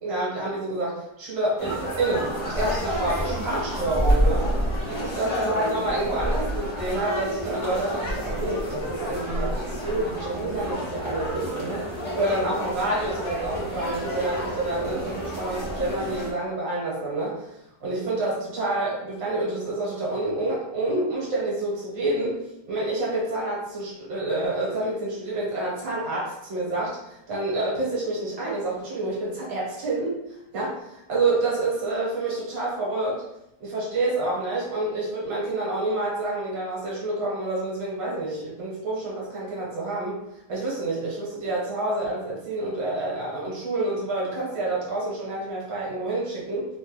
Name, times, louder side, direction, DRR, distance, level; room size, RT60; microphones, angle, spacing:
voice 1, 0.0-4.5 5.0-11.9 12.2-17.5 17.8-22.4 22.7-30.1 30.5-33.2 33.6-40.2 40.5-46.7, right 2 dB, 70° right, -5 dB, 1.8 m, -28 dB
sound 1, 1.6-16.3, equal, 55° left, 0.3 m, -29 dB
4.0 x 2.2 x 3.1 m, 0.83 s
omnidirectional pair, 2.1 m